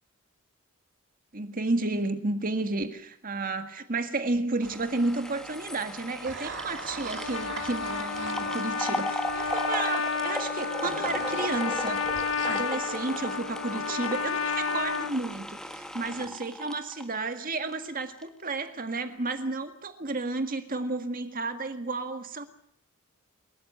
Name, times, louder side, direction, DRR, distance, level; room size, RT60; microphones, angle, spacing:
voice 1, 1.3-12.0 12.4-22.5, right 3 dB, 40° right, 8 dB, 1.9 m, -32 dB
sound 1, 4.6-17.9 18.2-18.3, equal, 5° left, 1.7 m, -37 dB
sound 2, 4.6-5.1 6.2-9.6 10.8-12.6, right 4 dB, 60° right, 2.7 m, -40 dB
Trumpet, 7.1-15.1, left 5 dB, 70° left, 1.3 m, -31 dB
27.5 x 14.0 x 9.5 m, 0.67 s
head